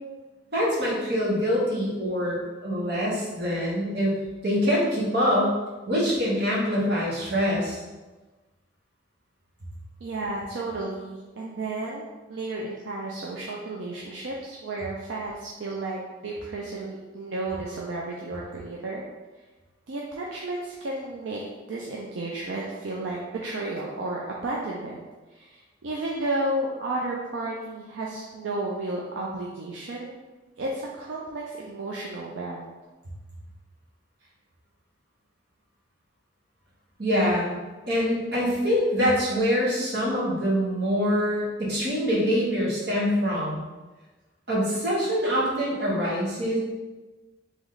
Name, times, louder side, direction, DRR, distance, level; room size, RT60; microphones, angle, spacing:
voice 1, 0.5-4.1 4.4-5.5 5.9-7.8 37.0-37.5 37.9-43.6 44.5-46.6, equal, 55° right, -5 dB, 1.2 m, -24 dB
voice 2, 10.0-19.0 19.9-25.0 25.3-30.2 30.6-32.6, right 2 dB, 75° right, -3 dB, 0.5 m, -32 dB
3.2 x 3.1 x 3.8 m, 1.2 s
head